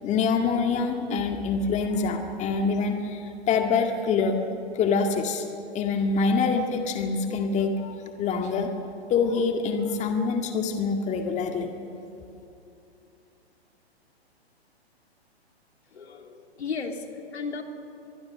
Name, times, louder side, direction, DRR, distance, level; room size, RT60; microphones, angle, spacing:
voice 1, 0.0-3.2 3.5-4.4 4.7-5.4 5.7-8.7 9.1-11.7, left 5 dB, 20° left, 4 dB, 1.9 m, -25 dB
voice 2, 15.9-17.0 17.3-17.6, left 5 dB, 80° left, 4 dB, 3.2 m, -34 dB
23.5 x 23.5 x 6.7 m, 2.7 s
hypercardioid pair, 125°, 32 cm